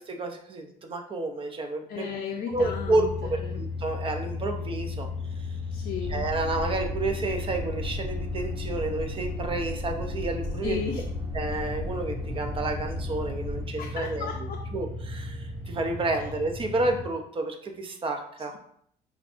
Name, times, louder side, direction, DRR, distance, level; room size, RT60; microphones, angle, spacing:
voice 1, 0.0-2.0 2.5-5.1 5.4-5.5 6.1-10.8 11.3-14.3 14.7-18.5, right 2 dB, 30° right, 4 dB, 0.6 m, -30 dB
voice 2, 1.9-3.6 5.7-6.2 10.6-11.0 13.8-14.6 16.1-16.3, left 7 dB, 55° left, 1 dB, 0.5 m, -35 dB
sound 1, 2.5-17.0, left 4 dB, 10° left, 1.3 m, -35 dB
sound 2, 6.0-13.6, right 1 dB, 65° right, 1.6 m, -37 dB
5.1 x 2.5 x 2.5 m, 0.66 s
cardioid pair, 110°, 17 cm